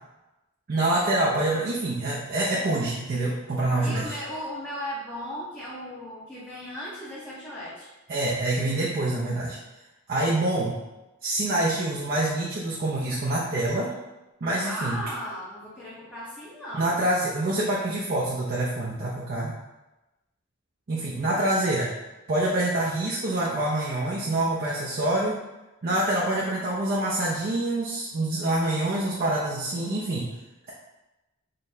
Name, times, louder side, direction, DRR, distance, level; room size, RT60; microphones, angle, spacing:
voice 1, 0.7-4.2 8.1-9.6 10.1-10.8 11.2-13.9 14.4-15.0 16.7-19.6 20.9-21.9 22.3-25.4 25.8-30.3, right 1 dB, 45° right, -5 dB, 0.5 m, -26 dB
voice 2, 3.8-7.9 14.6-17.0, equal, 10° left, -10 dB, 0.7 m, -36 dB
3.8 x 3.2 x 2.6 m, 1.0 s
head